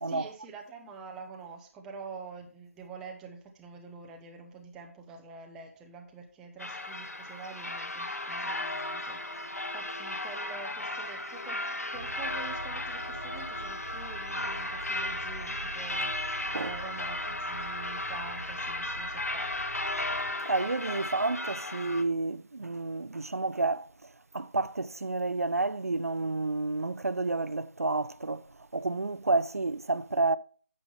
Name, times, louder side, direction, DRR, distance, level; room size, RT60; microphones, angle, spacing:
voice 1, 0.0-11.6 11.9-19.5, right 5 dB, 5° right, 0.5 m, -46 dB
sound 1, 6.6-22.0, left 2 dB, 75° left, 1.0 m, -35 dB
sound 2, 11.9-20.3, right 2 dB, 40° right, 1.1 m, -45 dB
voice 2, 20.5-23.9 24.3-28.4 28.7-30.4, right 3 dB, 70° right, 0.4 m, -30 dB
9.0 x 6.7 x 3.3 m
figure-of-eight pair, 155°, 8 cm